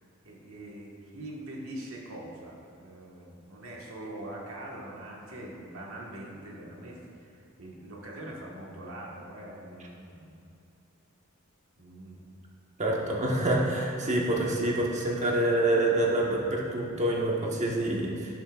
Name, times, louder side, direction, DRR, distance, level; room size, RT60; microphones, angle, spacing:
voice 1, 0.2-10.5 11.8-12.2, right 1 dB, 70° right, -3 dB, 1.5 m, -43 dB
voice 2, 12.8-18.3, right 1 dB, 35° right, -2 dB, 1.2 m, -27 dB
11.0 x 8.6 x 2.4 m, 2.7 s
head